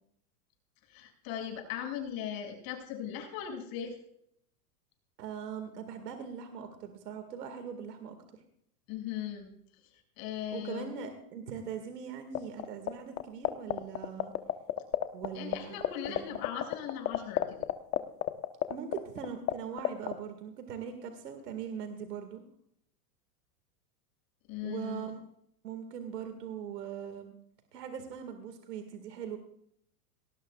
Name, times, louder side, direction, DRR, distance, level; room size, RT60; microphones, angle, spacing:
voice 1, 0.9-4.0 8.9-9.5 10.2-11.0 15.3-17.7 24.5-25.1, left 9 dB, 50° left, 2 dB, 6.5 m, -38 dB
voice 2, 5.2-8.2 10.5-14.3 15.1-15.7 16.1-16.3 18.7-22.4 24.6-25.2 25.6-27.3 27.7-29.4, right 7 dB, 90° right, 6 dB, 2.2 m, -41 dB
sound 1, 12.3-12.9 13.2-15.3 15.5-15.6 15.8-19.5 19.8-20.1, left 15 dB, 35° left, 1.1 m, -27 dB
19.0 x 18.5 x 2.4 m, 0.70 s
supercardioid pair, 125°, 47 cm